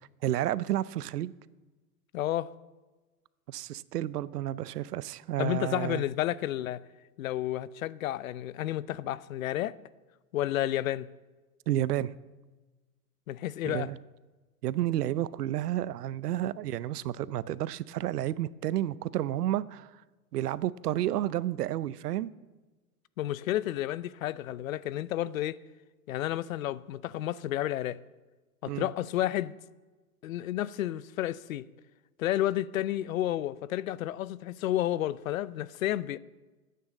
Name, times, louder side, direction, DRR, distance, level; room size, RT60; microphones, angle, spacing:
voice 1, 0.2-1.3 3.5-6.0 11.7-12.1 13.6-14.0 14.6-19.9 20.3-22.3 28.7-28.9, right 13 dB, 80° right, 0.7 m, -31 dB
voice 2, 2.1-2.5 5.4-6.8 7.2-9.8 10.3-11.1 13.3-13.9 23.2-25.6 26.1-28.0 28.6-29.5 30.2-31.7 32.2-36.2, left 13 dB, 60° left, 0.6 m, -31 dB
12.0 x 9.5 x 7.4 m
hypercardioid pair, 165°, 47 cm